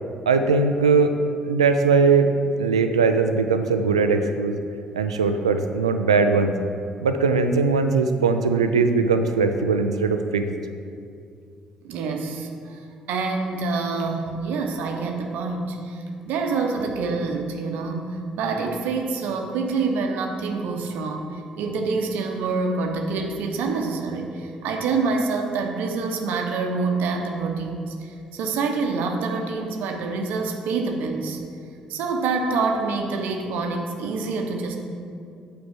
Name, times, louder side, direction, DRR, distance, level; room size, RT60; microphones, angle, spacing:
voice 1, 0.3-1.1 1.4-2.3 2.6-4.5 4.9-6.5 7.0-10.6, right 4 dB, 90° right, 8 dB, 0.3 m, -20 dB
voice 2, 11.8-12.8 13.1-31.4 31.9-34.8, right 4 dB, 70° right, 3 dB, 0.9 m, -26 dB
8.6 x 4.4 x 6.1 m, 2.3 s
hypercardioid pair, 45°, 3 cm